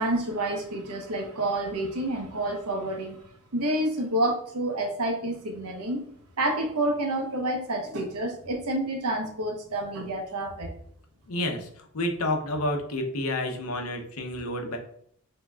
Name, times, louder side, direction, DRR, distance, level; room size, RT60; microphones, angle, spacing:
voice 1, 0.0-3.2 3.5-6.0 6.4-10.7, right 1 dB, 90° right, 3 dB, 1.0 m, -29 dB
voice 2, 11.3-11.7 11.9-14.8, left 1 dB, 70° left, 4 dB, 0.8 m, -29 dB
5.9 x 2.9 x 2.4 m, 0.66 s
head